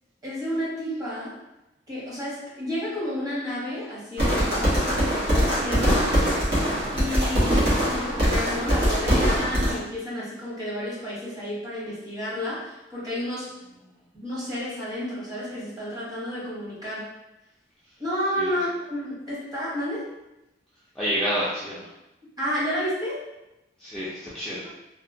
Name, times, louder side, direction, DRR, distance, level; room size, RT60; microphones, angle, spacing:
voice 1, 0.2-1.3 1.9-6.1 6.9-13.5 14.1-17.1 18.0-20.1 22.4-23.2, equal, 20° right, -8 dB, 1.0 m, -31 dB
sound 1, 4.2-9.7, equal, 65° right, 1.1 m, -22 dB
voice 2, 20.9-21.9 23.8-24.7, equal, ahead, -10 dB, 0.4 m, -29 dB
2.8 x 2.0 x 2.6 m, 0.94 s
head